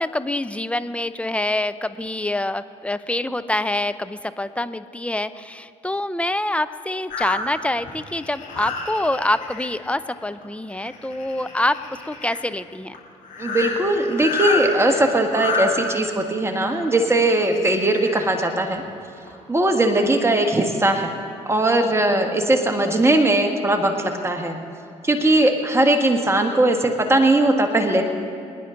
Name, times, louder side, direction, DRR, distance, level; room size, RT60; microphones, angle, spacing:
voice 1, 0.0-13.0, left 1 dB, 10° left, 13 dB, 0.7 m, -26 dB
sound 1, 7.1-9.6 10.1-10.4 10.7-12.4 12.9-13.0 13.2-15.6 16.6-18.2 18.8-18.9 19.3-19.4, left 4 dB, 60° left, 3.8 m, -29 dB
voice 2, 13.4-18.8 19.5-21.1 21.4-24.6 25.0-28.0, right 1 dB, 15° right, 4 dB, 1.7 m, -19 dB
25.0 x 10.0 x 3.9 m, 2.5 s
hypercardioid pair, 45°, 15 cm